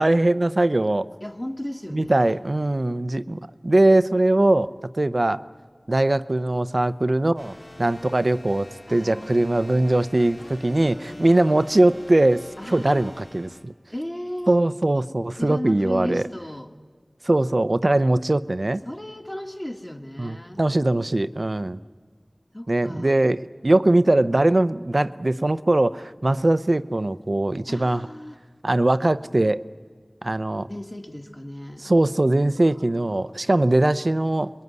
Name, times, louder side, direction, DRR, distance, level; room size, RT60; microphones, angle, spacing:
voice 1, 0.0-1.1 1.9-5.4 5.9-13.7 14.5-16.2 17.2-18.8 20.2-21.8 22.7-28.1 28.6-29.6 30.2-30.7 31.8-34.5, right 1 dB, 60° right, 13 dB, 0.7 m, -21 dB
voice 2, 1.2-2.4 8.9-9.9 10.8-11.6 12.6-13.1 13.9-14.7 15.4-16.7 18.9-20.6 22.5-23.2 27.7-28.4 30.7-31.9 32.6-32.7 33.0-33.4, left 1 dB, 25° left, 3 dB, 2.1 m, -36 dB
sound 1, 7.4-13.6, left 1 dB, 70° left, 2.8 m, -44 dB
26.5 x 21.5 x 9.6 m, 1.5 s
wide cardioid pair, 45°, 0 cm